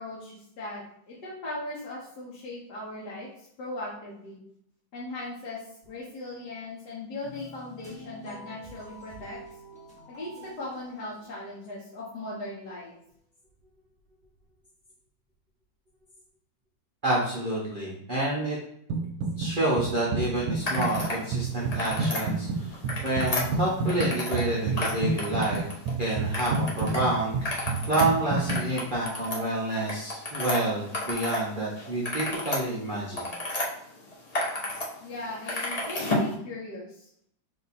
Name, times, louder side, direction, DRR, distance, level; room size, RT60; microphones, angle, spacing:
voice 1, 0.0-4.4 4.9-9.4 10.1-12.9 35.0-37.1, left 2 dB, 65° left, -5 dB, 1.3 m, -39 dB
sound 1, 7.2-11.8, right 1 dB, 5° left, 0.6 m, -48 dB
voice 2, 17.0-18.6 19.4-25.6 26.0-33.2, right 1 dB, 50° right, -6 dB, 0.6 m, -29 dB
sound 2, 18.9-19.5 19.8-28.6, right 4 dB, 75° right, 1.2 m, -29 dB
sound 3, 20.6-21.2 21.6-22.2 22.7-24.5 24.7-25.9 26.3-27.0 27.3-31.4 31.8-33.7 34.1-34.9 35.1-36.3, left 1 dB, 85° left, 0.3 m, -31 dB
3.9 x 2.8 x 4.0 m, 0.71 s
omnidirectional pair, 2.1 m